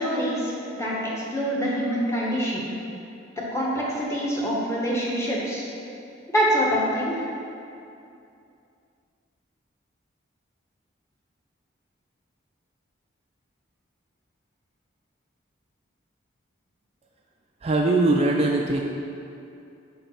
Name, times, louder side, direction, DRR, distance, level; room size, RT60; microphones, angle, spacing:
voice 1, 0.0-2.7 3.4-5.6 6.3-7.2, equal, 15° left, -5 dB, 1.4 m, -25 dB
voice 2, 17.6-18.8, right 2 dB, 35° right, 0 dB, 0.4 m, -21 dB
5.6 x 5.3 x 5.8 m, 2.6 s
head